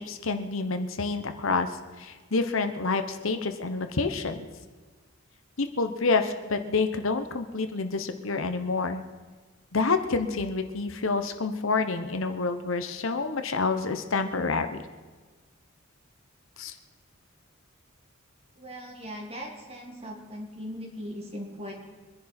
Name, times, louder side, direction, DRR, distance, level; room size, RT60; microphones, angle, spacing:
voice 1, 0.0-1.7 2.0-4.5 5.6-9.0 9.7-14.8 16.6-16.7, left 4 dB, 70° left, 8 dB, 1.0 m, -28 dB
voice 2, 18.6-21.7, equal, 30° right, 0 dB, 2.6 m, -39 dB
24.0 x 10.5 x 4.4 m, 1.4 s
head